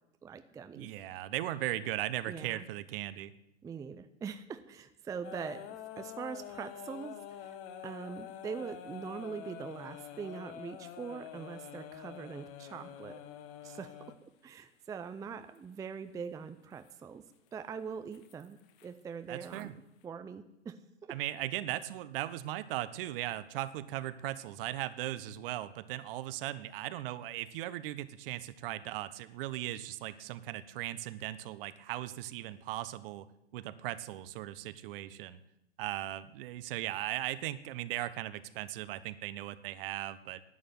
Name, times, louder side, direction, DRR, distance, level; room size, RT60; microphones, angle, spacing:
voice 1, 0.2-0.9 2.3-2.6 3.6-5.7 6.0-7.6 7.8-13.2 13.6-17.2 17.5-19.7 20.0-21.2, right 6 dB, 10° right, 10 dB, 0.5 m, -43 dB
voice 2, 0.7-3.3 19.3-19.8 21.1-33.3 33.5-35.4 35.8-40.4, right 14 dB, 50° right, 15 dB, 1.1 m, -38 dB
sound 1, 5.2-14.2 15.6-15.7 16.7-16.9 18.1-18.9 19.4-19.6, left 10 dB, 40° left, 1.4 m, -47 dB
11.0 x 8.5 x 9.3 m, 0.85 s
hypercardioid pair, 115°, 35 cm